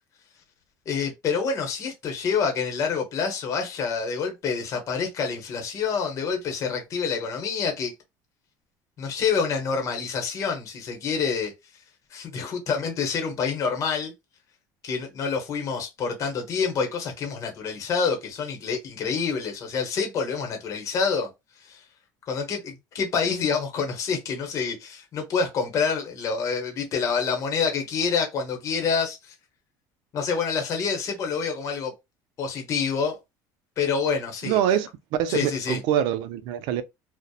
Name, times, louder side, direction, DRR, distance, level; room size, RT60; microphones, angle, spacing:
voice 1, 0.9-7.9 9.0-11.5 12.1-14.1 14.8-21.3 21.6-21.8 22.3-29.3 30.1-31.9 32.4-33.2 33.8-34.6 35.3-35.8, left 5 dB, 40° left, 0.8 m, -27 dB
voice 2, 34.4-34.9 35.2-36.8, right 10 dB, 75° right, 0.4 m, -24 dB
2.7 x 2.0 x 2.3 m
cardioid pair, 145°, 8 cm